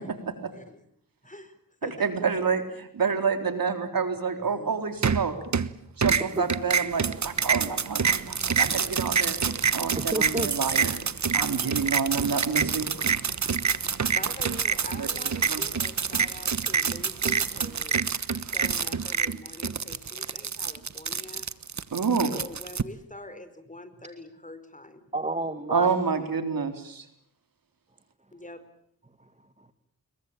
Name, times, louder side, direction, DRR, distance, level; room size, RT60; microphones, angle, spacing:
voice 1, 0.1-0.5 1.8-5.4 6.0-9.4 9.7-11.0 11.3-12.9 14.9-15.7 21.9-22.4 25.7-27.1, right 5 dB, 70° right, 7 dB, 3.8 m, -28 dB
voice 2, 1.2-1.6 1.8-2.1 4.5-4.7 5.1-5.2 6.3-6.4 14.1-21.5 22.3-25.0 28.3-28.6, left 1 dB, 20° left, 12 dB, 4.8 m, -44 dB
sound 1, 5.0-5.7 6.0-22.8, right 6 dB, 50° right, 1.3 m, -27 dB
voice 3, 10.0-10.5 13.6-13.8 20.4-20.5 25.1-25.9 29.6-29.7, right 2 dB, 20° right, 10 dB, 2.1 m, -31 dB
27.5 x 22.5 x 8.8 m, 0.67 s
cardioid pair, 60°, 35 cm